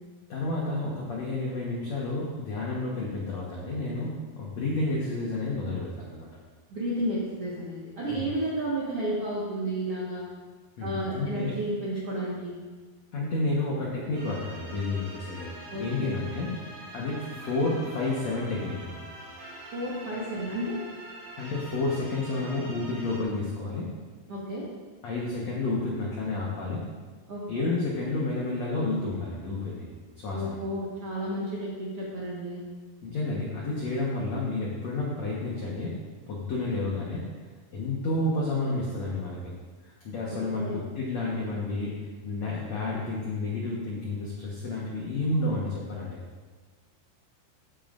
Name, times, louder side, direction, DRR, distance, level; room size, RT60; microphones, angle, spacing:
voice 1, 0.3-6.3 8.1-8.2 10.8-11.5 13.1-16.6 16.9-19.0 21.4-23.9 25.0-26.8 27.5-29.9 30.2-30.6 33.0-36.0 36.3-37.3 37.7-39.5 39.8-46.2, left 2 dB, 75° left, -4 dB, 1.5 m, -30 dB
voice 2, 6.7-10.2 10.8-12.6 15.7-16.1 19.7-20.8 24.3-24.7 27.3-27.6 30.3-32.6 40.5-40.8, right 1 dB, 65° right, -6 dB, 1.4 m, -32 dB
sound 1, 14.1-23.2, right 1 dB, 50° right, 2.6 m, -44 dB
14.0 x 9.0 x 2.5 m, 1.4 s
omnidirectional pair, 5.0 m